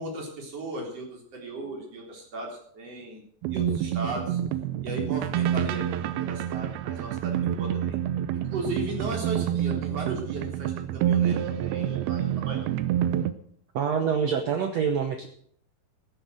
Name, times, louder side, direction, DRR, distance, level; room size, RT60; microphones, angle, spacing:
voice 1, 0.0-3.2 3.5-4.4 4.8-8.0 8.3-12.7, right 1 dB, 40° right, -1 dB, 4.6 m, -36 dB
sound 1, 3.4-13.3, right 11 dB, 90° right, 2.7 m, -28 dB
voice 2, 13.7-15.3, right 7 dB, 75° right, 5 dB, 1.6 m, -26 dB
14.0 x 9.6 x 6.4 m, 0.63 s
omnidirectional pair, 4.4 m